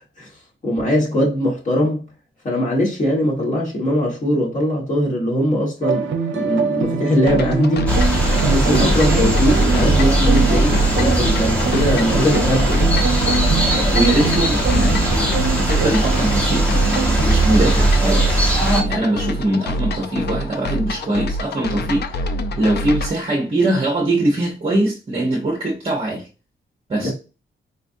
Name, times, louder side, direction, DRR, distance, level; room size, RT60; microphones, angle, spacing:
voice 1, 0.6-2.0 2.4-8.1 8.4-12.8 27.0-27.1, equal, 40° left, 1.5 m, -20 dB
sound 1, 5.8-17.7, right 6 dB, 70° right, 0.6 m, -25 dB
sound 2, 7.3-23.1, left 1 dB, 55° left, 0.4 m, -26 dB
sound 3, 7.9-18.8, right 1 dB, 5° left, 1.0 m, -18 dB
voice 2, 13.5-15.1 15.5-16.7 17.2-18.4 18.7-26.3 26.9-27.1, right 1 dB, 30° right, 0.7 m, -22 dB
4.3 x 2.5 x 2.6 m
wide cardioid pair, 140°, 20 cm